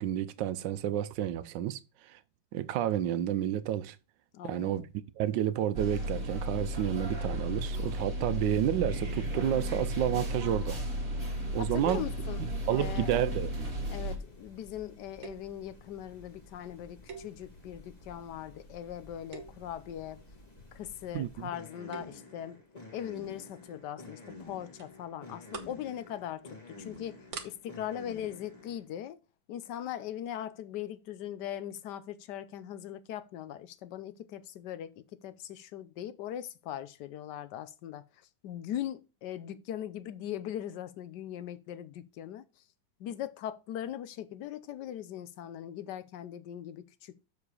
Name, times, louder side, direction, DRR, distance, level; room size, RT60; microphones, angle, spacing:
voice 1, 0.0-1.8 2.1-2.2 2.5-4.0 4.4-4.8 5.2-10.8 11.5-12.0 12.7-13.7 21.1-21.5, right 11 dB, 80° right, 1.3 m, -30 dB
voice 2, 4.3-4.9 11.2-12.4 12.7-13.1 13.9-20.2 20.7-22.6 22.9-29.2 29.5-42.6 43.0-47.2, left 11 dB, 70° left, 1.2 m, -40 dB
sound 1, 5.7-14.2, equal, 30° right, 1.9 m, -34 dB
sound 2, 11.5-28.9, left 2 dB, 20° left, 1.9 m, -51 dB
sound 3, 15.2-15.6 17.1-17.8 18.3-18.6 19.2-19.8 21.7-22.3 23.7-24.0 24.3-24.4 24.8-24.9 25.3-25.8 26.2-26.5 26.9-27.0 27.3-27.5, right 6 dB, 55° right, 1.5 m, -45 dB
7.2 x 5.0 x 4.8 m
omnidirectional pair, 2.0 m